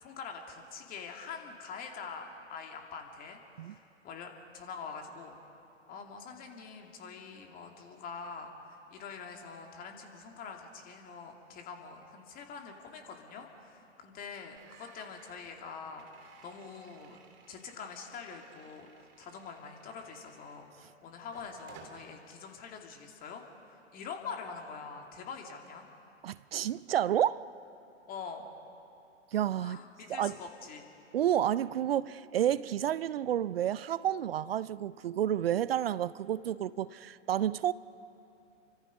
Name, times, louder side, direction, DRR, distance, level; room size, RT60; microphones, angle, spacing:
voice 1, 0.0-5.4 5.9-16.1 16.4-17.2 17.5-25.9 28.1-28.5 29.6-30.9, left 5 dB, 25° left, 2.4 m, -45 dB
sound 1, 14.6-20.8 21.2-22.1, right 6 dB, 30° right, 2.7 m, -58 dB
voice 2, 26.2-27.4 29.3-29.8 30.1-30.3 31.1-37.7, right 11 dB, 50° right, 0.5 m, -30 dB
29.0 x 25.0 x 5.2 m
figure-of-eight pair, 115°, 37 cm